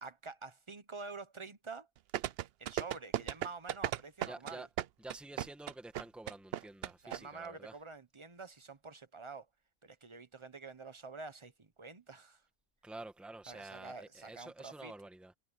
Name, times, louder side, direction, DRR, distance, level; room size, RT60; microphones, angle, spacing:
voice 1, 0.0-1.9 2.6-4.7 7.0-9.5 9.8-12.4 13.5-14.9, right 4 dB, 25° right, 0.9 m, -48 dB
sound 1, 2.1-7.2 7.4-7.5, right 12 dB, 65° right, 0.6 m, -35 dB
voice 2, 4.3-4.7 5.0-7.8 12.8-15.3, right 2 dB, ahead, 1.8 m, -49 dB
omnidirectional pair, 1.4 m